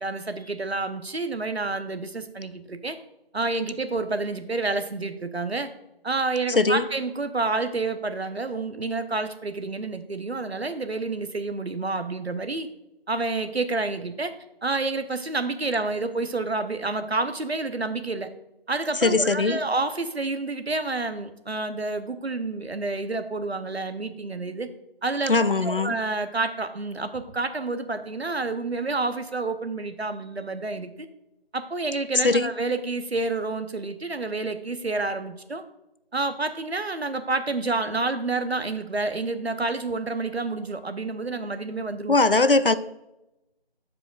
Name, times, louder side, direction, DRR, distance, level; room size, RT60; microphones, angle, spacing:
voice 1, 0.0-3.0 3.3-5.7 6.0-12.7 13.1-14.3 14.6-18.3 18.7-24.7 25.0-25.3 25.6-31.1 31.5-35.6 36.1-42.2, right 3 dB, 85° right, 0.9 m, -29 dB
voice 2, 19.0-19.6 25.3-26.0 32.2-32.5 42.1-42.7, left 3 dB, 60° left, 0.4 m, -20 dB
13.0 x 4.9 x 2.4 m
figure-of-eight pair, 180°, 31 cm